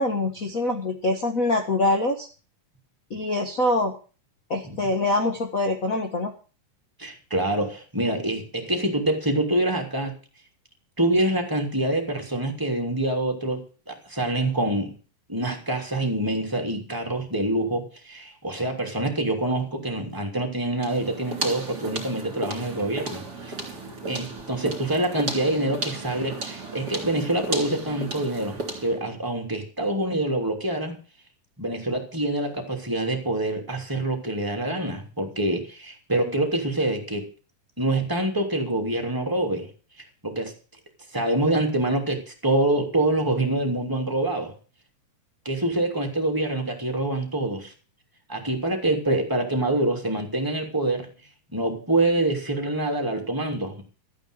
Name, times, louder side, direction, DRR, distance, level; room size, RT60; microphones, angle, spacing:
voice 1, 0.0-2.3 3.1-3.9 4.5-6.3, left 2 dB, 50° left, 4 dB, 1.0 m, -24 dB
voice 2, 7.0-10.1 11.0-15.0 15.3-23.5 24.1-31.0 31.6-37.3 37.8-39.7 40.2-40.5 41.1-44.5 45.4-47.7 48.3-51.1 51.5-53.8, right 1 dB, 5° right, 3 dB, 2.7 m, -26 dB
sound 1, 20.8-29.0, right 3 dB, 30° right, 3.9 m, -34 dB
13.5 x 9.2 x 6.6 m, 0.37 s
omnidirectional pair, 3.9 m